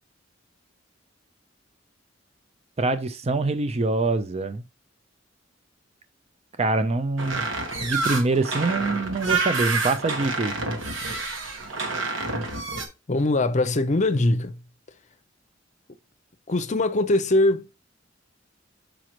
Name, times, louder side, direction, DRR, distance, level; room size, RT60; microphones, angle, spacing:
voice 1, 2.8-4.6 6.6-7.4 7.8-10.5, right 3 dB, 35° right, 0.5 m, -24 dB
sound 1, 7.2-12.9, right 3 dB, 85° right, 1.4 m, -28 dB
voice 2, 13.1-14.6 16.5-17.7, left 2 dB, 40° left, 0.6 m, -22 dB
6.2 x 5.1 x 3.0 m
head